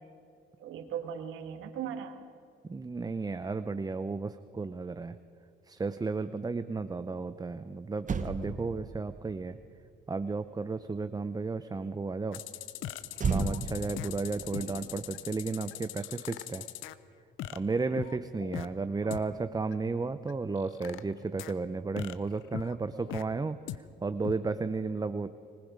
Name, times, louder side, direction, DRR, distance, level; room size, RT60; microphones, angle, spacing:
voice 1, 0.6-2.2 14.5-14.9 19.0-19.2, right 8 dB, 90° right, 6 dB, 1.9 m, -39 dB
voice 2, 2.7-5.2 5.7-9.6 10.1-12.4 13.3-16.7 17.5-25.3, right 4 dB, 20° right, 11 dB, 0.6 m, -33 dB
Motor vehicle (road), 7.6-7.7 8.0-11.5 13.2-15.8 16.0-16.3, right 5 dB, 40° right, 1.5 m, -37 dB
sound 1, 12.3-16.9 17.4-18.7 19.1-19.2 19.7-19.8 20.3-21.5 22.0-23.2 23.7-23.8 24.2-24.3, left 12 dB, 90° left, 0.8 m, -40 dB
25.0 x 20.0 x 5.2 m, 2.4 s
cardioid pair, 90°, 20 cm